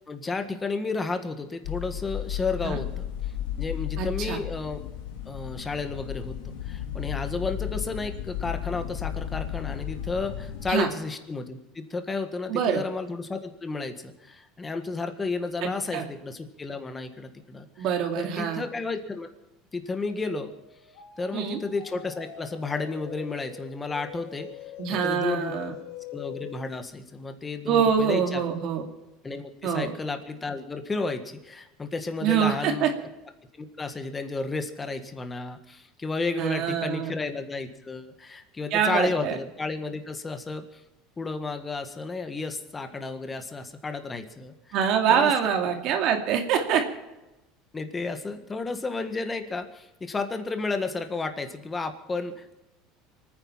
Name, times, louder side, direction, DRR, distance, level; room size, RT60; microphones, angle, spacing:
voice 1, 0.1-3.1 3.6-4.9 5.3-17.9 18.2-19.3 19.7-20.5 21.2-24.5 24.9-25.5 26.1-28.4 29.2-33.0 33.6-40.6 41.2-44.8 45.1-45.3 47.7-52.6, left 3 dB, 15° left, 7 dB, 1.6 m, -32 dB
sound 1, 1.6-10.7, left 10 dB, 90° left, 2.1 m, -34 dB
voice 2, 4.0-4.4 10.7-10.9 12.5-12.8 15.6-16.0 17.8-18.6 21.3-21.6 24.8-25.7 27.7-28.8 29.6-29.9 32.2-32.9 36.4-37.1 38.7-39.4 44.7-46.8, right 8 dB, 55° right, 4 dB, 2.5 m, -25 dB
sound 2, 20.0-26.7, left 10 dB, 70° left, 3.3 m, -43 dB
25.0 x 9.7 x 5.8 m, 0.99 s
cardioid pair, 140°, 0 cm